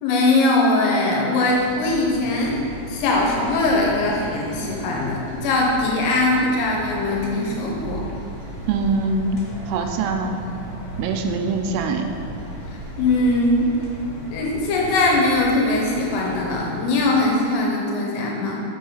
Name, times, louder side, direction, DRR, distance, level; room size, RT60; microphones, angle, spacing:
voice 1, 0.0-8.0 12.7-13.7 14.3-18.6, left 2 dB, 80° left, -1 dB, 3.3 m, -21 dB
sound 1, 1.4-17.1, left 1 dB, 60° left, 2.7 m, -39 dB
sound 2, 2.1-15.5, right 2 dB, 70° right, 2.2 m, -39 dB
voice 2, 8.7-9.4 9.7-10.4 11.0-12.1, right 4 dB, 85° right, 5 dB, 3.1 m, -23 dB
6.5 x 5.4 x 4.7 m, 2.6 s
omnidirectional pair, 6.0 m